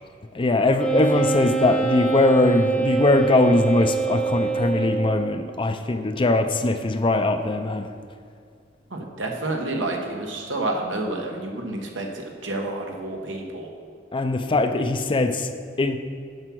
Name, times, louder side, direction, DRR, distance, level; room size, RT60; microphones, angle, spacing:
voice 1, 0.3-7.9 14.1-15.5 15.8-16.0, left 2 dB, 25° left, 8 dB, 0.4 m, -21 dB
Wind instrument woodwind instrument, 0.8-5.4, right 5 dB, 5° left, 0.8 m, -25 dB
voice 2, 8.9-13.7, right 2 dB, 85° right, 1 dB, 1.2 m, -29 dB
7.6 x 5.8 x 6.2 m, 2.2 s
head